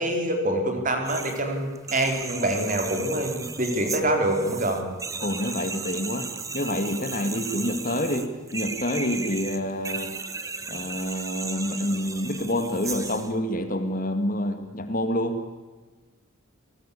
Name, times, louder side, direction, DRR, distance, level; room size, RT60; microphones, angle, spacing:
voice 1, 0.0-4.9, right 1 dB, 40° right, 4 dB, 4.1 m, -25 dB
sound 1, 1.0-1.4 1.8-13.3, right 4 dB, 15° right, 1.2 m, -35 dB
voice 2, 5.2-10.2 10.7-15.4, left 1 dB, 40° left, 8 dB, 2.1 m, -28 dB
29.5 x 19.5 x 8.5 m, 1.3 s
head